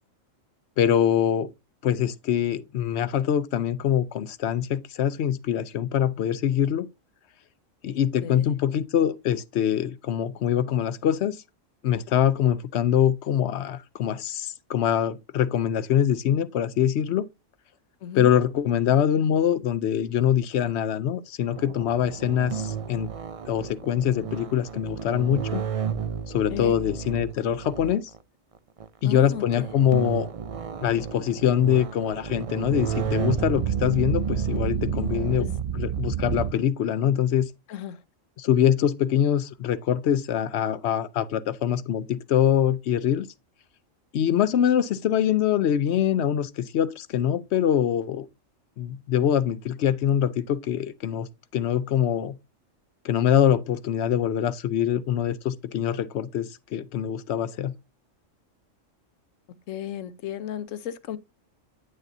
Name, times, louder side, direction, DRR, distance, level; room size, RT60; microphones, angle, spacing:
voice 1, 0.8-1.5 1.8-6.9 7.8-11.4 11.8-17.3 18.1-23.1 23.5-25.6 26.3-28.1 29.0-30.3 30.8-35.5 35.7-37.5 38.4-43.3 44.1-48.3 48.8-51.3 51.5-52.4 53.0-57.7, left 9 dB, 65° left, 0.8 m, -24 dB
sound 1, 21.5-28.2 28.8-28.9 29.2-36.5, right 8 dB, 55° right, 0.4 m, -31 dB
voice 2, 29.0-29.4 35.4-35.6 37.7-38.0 59.7-61.2, left 10 dB, 85° left, 1.1 m, -34 dB
9.3 x 6.5 x 2.6 m
omnidirectional pair, 1.3 m